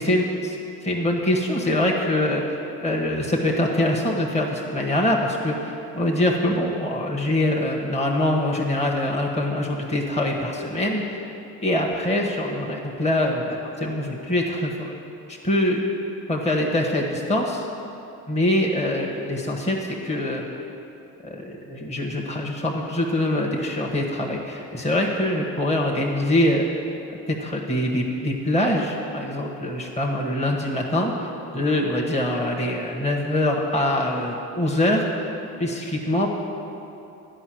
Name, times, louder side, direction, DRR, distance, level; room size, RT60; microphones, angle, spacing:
voice 1, 0.0-11.2 11.6-15.0 15.3-15.8 16.3-17.6 18.3-20.4 21.2-26.7 27.3-35.0 35.6-36.3, left 1 dB, 15° left, -1 dB, 1.3 m, -24 dB
9.9 x 5.6 x 7.7 m, 2.8 s
hypercardioid pair, 60°, 39 cm